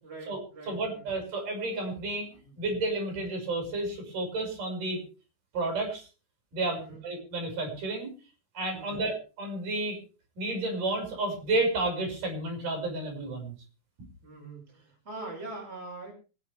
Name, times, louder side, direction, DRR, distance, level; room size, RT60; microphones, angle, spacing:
voice 1, 0.0-1.0 2.4-2.6 6.7-7.0 8.7-9.0 14.2-16.1, right 2 dB, 15° right, -2 dB, 6.3 m, -43 dB
voice 2, 0.7-2.3 2.6-5.0 5.5-6.1 6.5-8.1 8.5-10.0 10.4-13.5, right 2 dB, 45° right, 2 dB, 7.8 m, -31 dB
24.5 x 11.0 x 3.6 m, 0.35 s
omnidirectional pair, 5.3 m